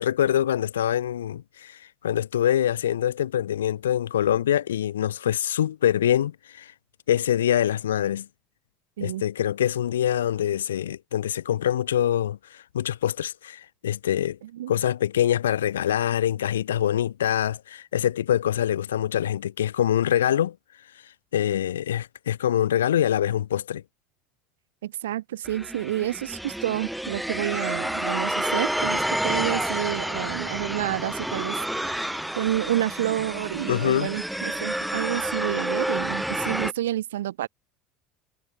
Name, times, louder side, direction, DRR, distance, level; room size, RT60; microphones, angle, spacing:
voice 1, 0.0-6.7 7.1-8.3 9.0-14.4 14.7-20.6 21.3-23.8 33.7-34.1, left 10 dB, 85° left, 1.2 m, -24 dB
voice 2, 24.8-37.5, right 13 dB, 80° right, 3.4 m, -29 dB
sound 1, 25.4-36.7, right 1 dB, 5° right, 1.2 m, -29 dB
hypercardioid pair, 75°, 0 cm